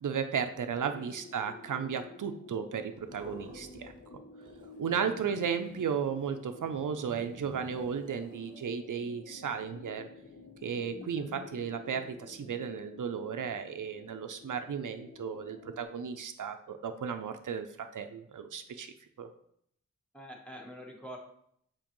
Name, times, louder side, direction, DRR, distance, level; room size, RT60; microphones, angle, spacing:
voice 1, 0.0-3.9 4.8-10.1 10.6-19.3, right 7 dB, 85° right, 7 dB, 0.5 m, -35 dB
sound 1, 0.6-15.8, left 3 dB, 50° left, 0.7 m, -51 dB
sound 2, 2.9-4.1 4.4-8.8, right 1 dB, 15° right, 1.5 m, -52 dB
voice 2, 20.1-21.2, equal, 5° left, -1 dB, 1.2 m, -46 dB
7.2 x 4.5 x 3.0 m, 0.70 s
wide cardioid pair, 70°, 30 cm